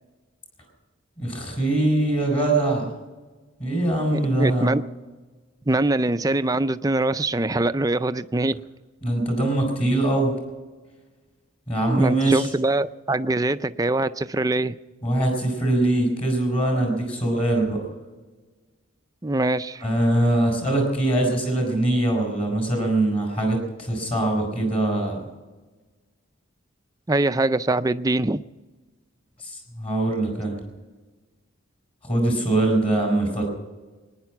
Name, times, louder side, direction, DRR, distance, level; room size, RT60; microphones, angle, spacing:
voice 1, 1.2-2.9 3.6-4.8 9.0-10.3 11.7-12.5 15.0-17.8 19.8-25.2 29.4-30.6 32.0-33.4, right 1 dB, 30° left, 2 dB, 4.4 m, -22 dB
voice 2, 4.1-4.8 5.7-8.6 11.9-14.8 19.2-19.8 27.1-28.4, right 2 dB, 15° right, 12 dB, 0.4 m, -23 dB
23.5 x 10.0 x 6.0 m, 1.3 s
head